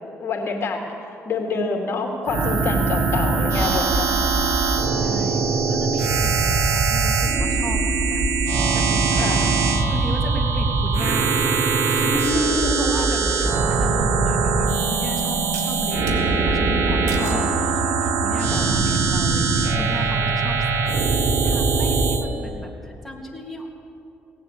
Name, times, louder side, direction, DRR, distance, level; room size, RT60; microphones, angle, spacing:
voice 1, 0.2-4.4 4.9-5.3 9.1-9.5 12.1-13.5 17.2-17.5 18.4-18.8, left 3 dB, 50° left, 1 dB, 2.6 m, -27 dB
sound 1, 2.3-22.2, right 4 dB, 65° right, 1.3 m, -21 dB
voice 2, 2.6-3.2 3.9-9.6 9.9-23.7, left 1 dB, ahead, -1 dB, 3.2 m, -36 dB
sound 2, 14.2-14.3 15.5-16.2 17.1-17.5 18.1-18.5, right 6 dB, 85° right, 1.6 m, -36 dB
17.5 x 8.0 x 8.2 m, 2.6 s
supercardioid pair, 60°, 5 cm